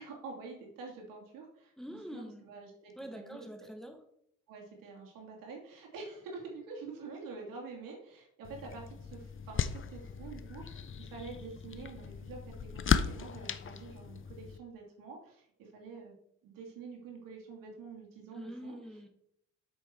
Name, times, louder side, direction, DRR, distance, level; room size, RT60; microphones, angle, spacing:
voice 1, 0.0-3.7 4.5-16.1 16.4-18.8, right 4 dB, 75° right, 0 dB, 2.7 m, -47 dB
voice 2, 1.8-2.4 3.0-4.0 18.3-19.1, equal, ahead, 4 dB, 1.7 m, -45 dB
sound 1, 8.4-14.6, left 7 dB, 35° left, 0.7 m, -36 dB
7.6 x 6.5 x 4.5 m, 0.70 s
supercardioid pair, 60°, 33 cm